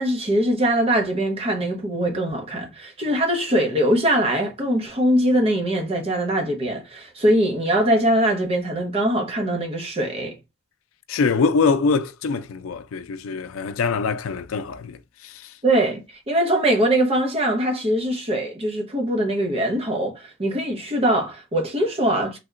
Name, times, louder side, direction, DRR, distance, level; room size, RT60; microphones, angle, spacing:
voice 1, 0.0-10.4 15.6-22.4, right 1 dB, 30° right, 0.8 m, -22 dB
voice 2, 11.1-15.0 15.2-15.4, left 4 dB, 90° left, 0.4 m, -23 dB
3.4 x 2.8 x 2.4 m
head